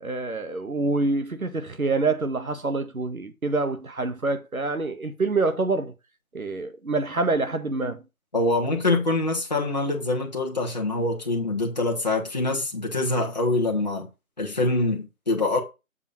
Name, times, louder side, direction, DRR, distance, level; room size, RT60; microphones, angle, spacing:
voice 1, 0.0-5.9 6.3-8.0, right 3 dB, 75° right, 1.7 m, -26 dB
voice 2, 8.3-14.1 14.4-15.6, left 2 dB, 30° left, 1.4 m, -25 dB
7.1 x 4.7 x 5.4 m
figure-of-eight pair, 175°, 42 cm